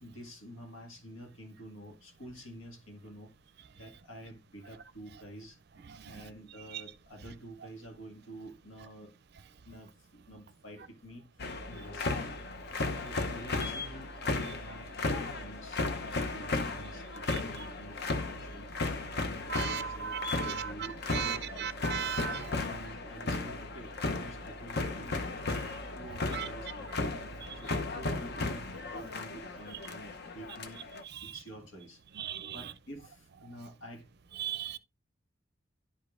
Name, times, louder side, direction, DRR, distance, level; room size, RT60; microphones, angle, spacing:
voice 1, 0.0-3.3 3.7-5.6 6.1-9.1 9.6-12.3 13.0-18.7 19.2-21.7 22.6-27.1 27.5-30.8 31.2-34.1, right 1 dB, 85° left, 1.7 m, -49 dB
voice 2, 5.9-6.2 6.7-6.8 17.3-17.4 19.5-20.7 21.1-22.6 25.5-25.6 26.3-26.5 27.4-27.6 31.0-31.4 32.1-32.7 34.4-34.8, right 8 dB, 50° right, 0.5 m, -37 dB
sound 1, 11.4-31.0, left 3 dB, 50° left, 0.7 m, -35 dB
11.0 x 5.1 x 2.4 m
head